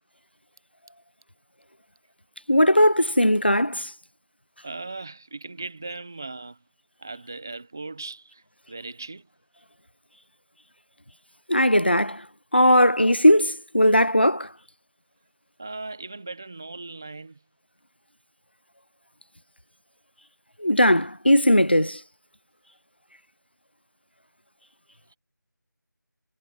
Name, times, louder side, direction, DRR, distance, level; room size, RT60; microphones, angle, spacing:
voice 1, 2.5-3.9 11.5-12.2 12.5-14.5 20.6-22.0, equal, 30° left, 0.4 m, -18 dB
voice 2, 4.6-6.6 7.0-9.3 15.6-17.4, right 3 dB, 10° right, 0.8 m, -38 dB
figure-of-eight pair, 175°, 11 cm